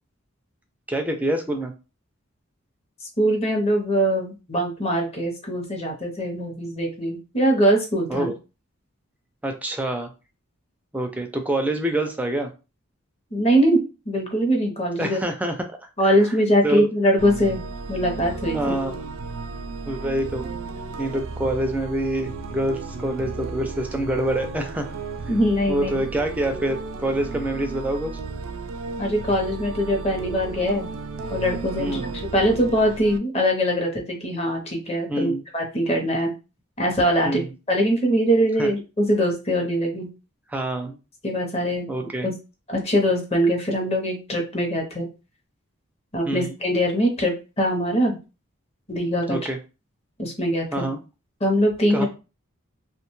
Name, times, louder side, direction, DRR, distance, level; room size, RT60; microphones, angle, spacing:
voice 1, 0.9-1.7 8.1-8.3 9.4-10.1 10.9-12.5 15.0-15.8 16.0-16.1 16.6-16.9 18.5-18.9 19.8-20.5 21.0-24.9 25.7-28.1 31.8-32.1 35.1-35.4 37.2-37.5 38.6-38.7 40.5-41.0 41.9-42.3 46.3-46.5 49.3-49.6 50.7-51.0 51.9-52.0, right 1 dB, 5° right, 4 dB, 0.3 m, -26 dB
voice 2, 3.2-8.3 13.3-15.2 16.0-18.7 25.3-26.0 29.0-30.9 31.3-32.0 32.3-36.3 36.8-40.1 41.2-41.9 42.2-42.3 42.7-45.1 46.1-48.2 48.9-49.4 50.2-50.9 51.4-52.0, equal, 30° left, 1 dB, 0.7 m, -22 dB
sound 1, 17.2-33.2, right 4 dB, 80° right, 0.3 m, -34 dB
2.6 x 2.2 x 3.0 m, 0.31 s
head